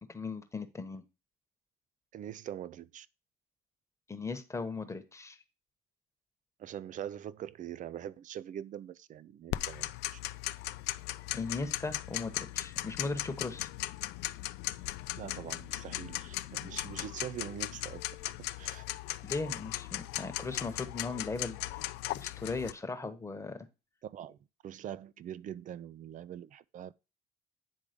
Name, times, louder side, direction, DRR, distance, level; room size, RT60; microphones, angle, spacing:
voice 1, 0.1-1.0 4.1-5.4 11.3-13.7 19.2-21.8 22.2-23.7, left 3 dB, 15° left, 1.1 m, -38 dB
voice 2, 2.1-3.1 6.6-10.2 15.2-18.0 18.6-18.8 24.0-24.4 24.6-26.9, right 10 dB, 50° right, 0.5 m, -43 dB
Tick-tock, 9.5-22.7, left 17 dB, 90° left, 0.4 m, -38 dB
9.1 x 3.6 x 5.1 m
cardioid pair, 110°, 17 cm